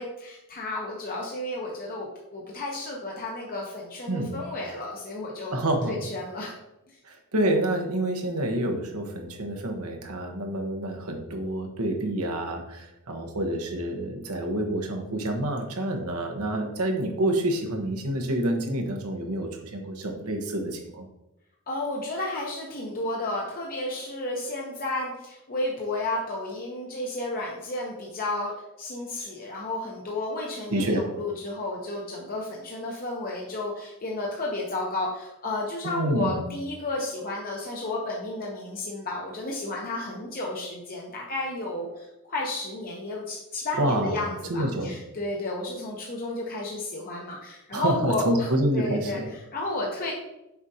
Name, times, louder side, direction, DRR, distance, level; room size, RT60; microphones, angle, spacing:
voice 1, 0.0-5.6 5.9-6.6 6.9-7.0 21.7-28.5 28.8-48.5 48.7-50.1, left 2 dB, 40° left, -2 dB, 0.8 m, -32 dB
voice 2, 5.5-6.0 7.0-21.1 29.2-29.3 30.7-31.0 35.8-36.4 43.8-44.9 47.7-49.3, right 1 dB, 90° right, 3 dB, 1.1 m, -28 dB
7.0 x 5.0 x 2.8 m, 0.91 s
head